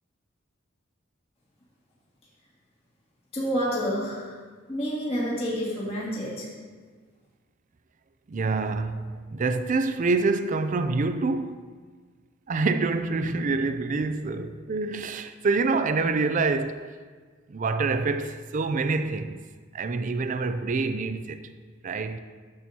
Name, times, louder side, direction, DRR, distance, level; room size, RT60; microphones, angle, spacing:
voice 1, 3.3-4.4 4.7-6.5, equal, 30° left, 2.1 m, -29 dB
voice 2, 8.3-11.6 12.5-16.8 17.5-19.4 19.7-21.5 21.8-22.2, right 3 dB, 40° right, 0.4 m, -26 dB
13.5 x 7.6 x 2.8 m
head